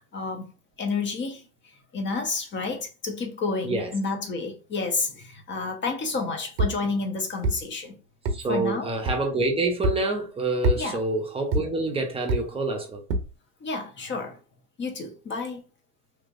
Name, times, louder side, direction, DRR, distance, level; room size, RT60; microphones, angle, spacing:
voice 1, 0.1-0.5 0.8-1.4 1.9-8.0 8.5-8.9 10.8-11.0 13.6-14.4 14.8-15.6, left 3 dB, 25° left, 1.0 m, -30 dB
sound 1, 6.6-6.8 7.4-7.6 8.3-8.4 9.1-9.2 9.8-10.0 10.6-10.8 11.5-11.7 12.3-12.4 13.1-13.3, right 1 dB, 80° right, 0.9 m, -24 dB
voice 2, 8.3-13.0, right 2 dB, 10° right, 0.9 m, -27 dB
3.2 x 3.0 x 2.6 m
hypercardioid pair, 100°, 49 cm